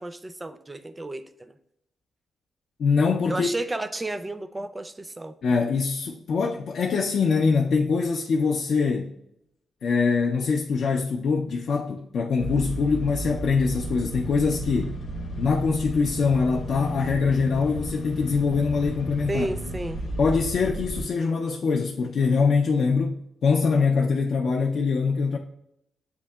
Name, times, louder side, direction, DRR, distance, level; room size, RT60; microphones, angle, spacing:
voice 1, 0.0-1.6 3.3-5.3 19.3-20.0, right 2 dB, 20° right, 0.4 m, -32 dB
voice 2, 2.8-3.5 5.4-9.1 9.8-15.0 15.4-19.5 20.2-25.4, left 5 dB, 65° left, 0.4 m, -23 dB
sound 1, 12.4-21.0, right 1 dB, 90° left, 0.9 m, -33 dB
7.8 x 2.8 x 2.2 m
cardioid pair, 100°, 0 cm